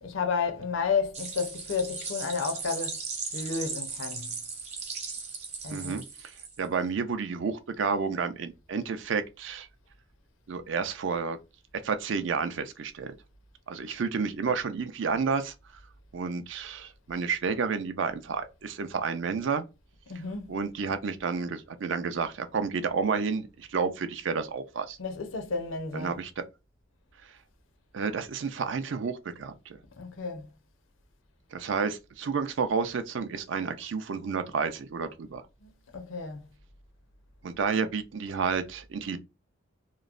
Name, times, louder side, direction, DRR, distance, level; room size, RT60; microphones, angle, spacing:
voice 1, 0.0-3.0 3.3-4.3 5.6-6.0 20.1-20.5 25.0-26.2 30.0-30.5 35.6-36.4, left 5 dB, 85° left, 0.7 m, -32 dB
sound 1, 1.1-6.7, right 4 dB, 35° right, 0.8 m, -37 dB
voice 2, 5.7-9.7 10.5-11.4 11.8-13.1 13.7-15.5 16.1-19.7 20.5-25.0 25.9-26.4 27.3-27.4 27.9-29.8 31.5-35.4 37.4-39.2, right 5 dB, 70° right, 0.4 m, -30 dB
3.0 x 2.0 x 2.4 m
head